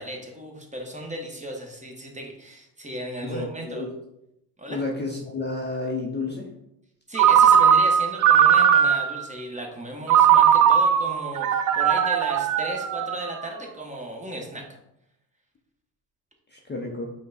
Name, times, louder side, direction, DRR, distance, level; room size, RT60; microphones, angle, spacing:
voice 1, 0.0-3.8 4.6-4.8 7.1-14.7, right 1 dB, 15° right, 0 dB, 1.1 m, -36 dB
voice 2, 3.2-3.9 4.7-6.5 16.5-17.1, left 2 dB, 20° left, 0 dB, 0.7 m, -31 dB
Ringtone, 7.2-9.2 10.1-13.4, right 8 dB, 45° right, 0.4 m, -18 dB
5.0 x 2.3 x 4.0 m, 0.84 s
supercardioid pair, 60°, 48 cm